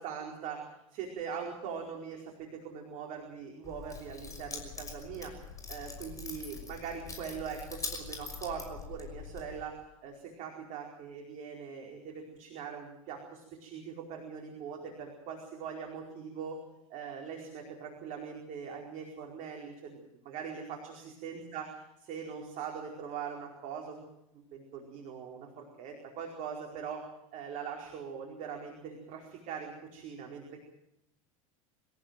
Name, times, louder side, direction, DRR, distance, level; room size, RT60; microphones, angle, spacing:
voice 1, 0.0-5.3 5.7-16.6 16.9-24.0 24.3-27.0 27.3-30.6, right 6 dB, 45° right, 1 dB, 4.8 m, -42 dB
Keys jangling, 3.6-9.6, left 5 dB, 20° left, 6.0 m, -43 dB
26.5 x 15.0 x 7.7 m, 0.83 s
figure-of-eight pair, 80°, 18 cm